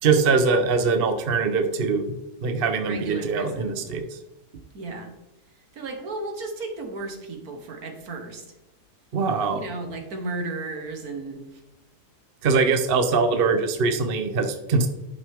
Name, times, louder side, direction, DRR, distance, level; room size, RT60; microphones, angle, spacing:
voice 1, 0.0-2.0 2.4-4.2 9.1-9.6 12.4-14.9, right 4 dB, 45° right, 7 dB, 0.8 m, -22 dB
voice 2, 2.8-3.8 4.7-5.1 5.7-8.5 9.5-11.6, right 3 dB, 65° right, 4 dB, 1.8 m, -34 dB
11.5 x 6.1 x 3.6 m, 0.97 s
omnidirectional pair, 1.7 m